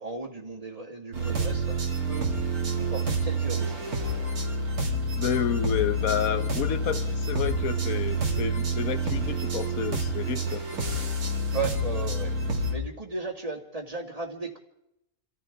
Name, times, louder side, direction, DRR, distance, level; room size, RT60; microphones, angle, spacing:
voice 1, 0.0-1.8 2.1-2.3 2.8-3.9 11.5-14.6, right 4 dB, 25° right, 2.1 m, -36 dB
sound 1, 1.1-12.8, right 1 dB, 90° right, 2.8 m, -28 dB
voice 2, 5.2-10.6, left 8 dB, 75° left, 1.5 m, -30 dB
29.0 x 14.0 x 3.5 m
omnidirectional pair, 1.5 m